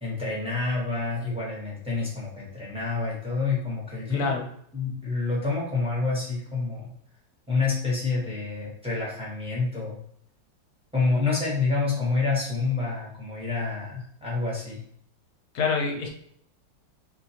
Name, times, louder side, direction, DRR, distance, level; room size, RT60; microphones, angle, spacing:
voice 1, 0.0-4.3 4.7-6.9 7.5-10.0 10.9-14.8, left 4 dB, 5° right, -5 dB, 0.8 m, -28 dB
voice 2, 4.1-4.5 15.5-16.1, left 4 dB, 65° left, 1 dB, 1.1 m, -26 dB
3.9 x 2.6 x 2.8 m, 0.66 s
omnidirectional pair, 2.0 m